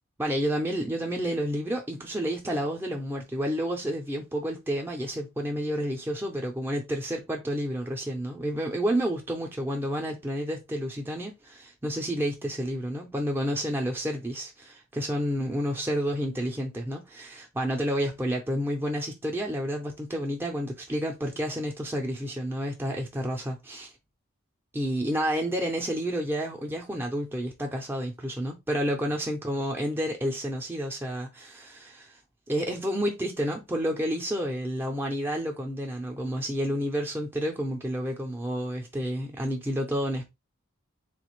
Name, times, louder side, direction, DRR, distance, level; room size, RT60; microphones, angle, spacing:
voice 1, 0.2-23.9 24.7-32.1 32.5-40.3, equal, 10° right, 0.5 m, -30 dB
3.6 x 2.5 x 3.0 m
head